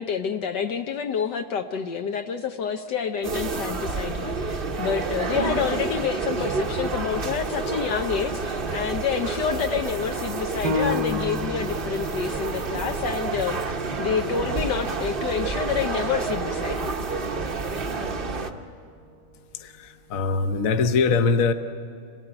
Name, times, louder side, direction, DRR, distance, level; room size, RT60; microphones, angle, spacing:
voice 1, 0.0-16.9, left 7 dB, 70° left, 5 dB, 1.4 m, -28 dB
sound 1, 3.2-18.5, right 4 dB, 35° right, 1.0 m, -29 dB
Piano, 10.6-15.8 16.3-16.4 17.0-17.5, left 2 dB, 60° right, 1.5 m, -33 dB
voice 2, 19.5-21.5, left 4 dB, 50° left, 8 dB, 1.2 m, -22 dB
27.0 x 18.5 x 8.8 m, 2.3 s
omnidirectional pair, 2.1 m